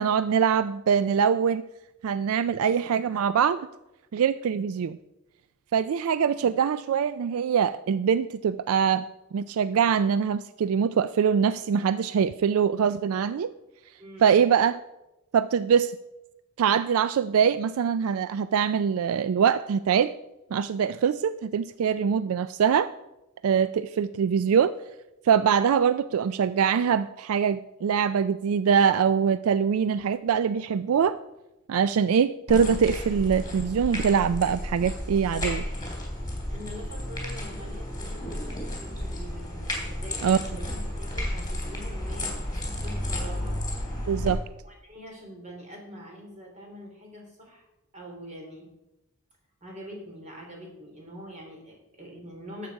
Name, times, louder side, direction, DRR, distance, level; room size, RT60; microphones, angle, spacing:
voice 1, 0.0-1.6 2.0-3.7 4.1-5.0 5.7-13.5 14.2-14.8 15.3-16.0 16.6-20.2 20.5-22.9 23.4-24.7 25.2-31.2 31.7-35.7 40.2-40.4 44.1-44.4, right 7 dB, 75° right, 14 dB, 0.3 m, -23 dB
voice 2, 14.0-14.4 36.5-42.3 42.6-43.6 44.6-47.6 47.9-48.7 49.6-52.7, equal, 35° right, 0 dB, 3.2 m, -44 dB
sound 1, 32.5-44.3, left 1 dB, 20° left, 3.0 m, -32 dB
12.5 x 7.5 x 4.7 m, 0.95 s
head